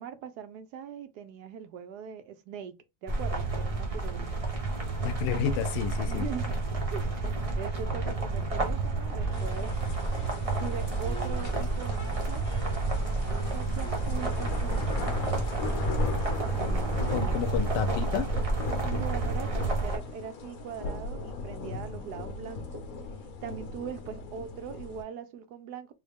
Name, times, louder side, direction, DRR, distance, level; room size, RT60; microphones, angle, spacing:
voice 1, 0.0-4.3 6.1-6.6 6.9-9.8 10.6-12.4 13.3-15.2 16.5-17.4 18.8-22.8 23.4-25.9, right 8 dB, 75° right, 1.1 m, -41 dB
sound 1, 3.1-20.0, right 3 dB, 40° right, 0.4 m, -30 dB
voice 2, 5.0-6.3 17.1-18.3, left 9 dB, 85° left, 1.2 m, -30 dB
Wind instrument woodwind instrument, 9.2-14.0 14.3-16.9, right 2 dB, 10° left, 0.6 m, -49 dB
sound 2, 9.3-25.0, left 4 dB, 60° left, 1.1 m, -38 dB
3.8 x 2.1 x 3.4 m
omnidirectional pair, 1.8 m